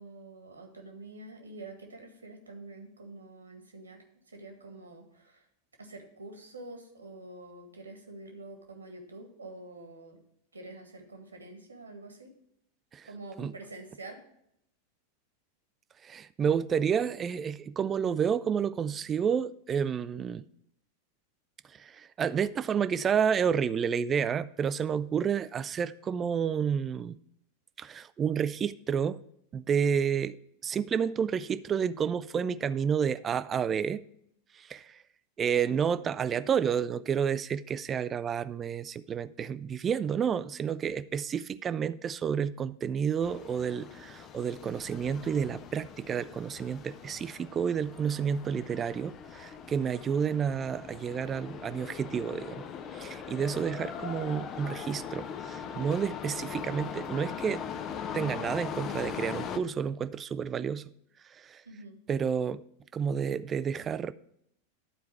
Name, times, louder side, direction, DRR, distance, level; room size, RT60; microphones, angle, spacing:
voice 1, 0.0-5.5 5.8-10.2 10.5-12.3 13.1-14.2 61.7-62.0, right 2 dB, 75° right, 1.7 m, -47 dB
voice 2, 16.0-20.4 21.7-27.2 27.8-29.2 29.5-30.4 30.6-34.0 34.5-35.0 35.4-52.6 52.9-57.6 58.1-60.9 61.3-61.6 62.1-62.6 62.9-64.1, right 7 dB, 25° right, 0.3 m, -30 dB
sound 1, 43.2-59.6, left 7 dB, 30° left, 0.6 m, -40 dB
11.5 x 4.6 x 4.6 m
figure-of-eight pair, 90°, 0 cm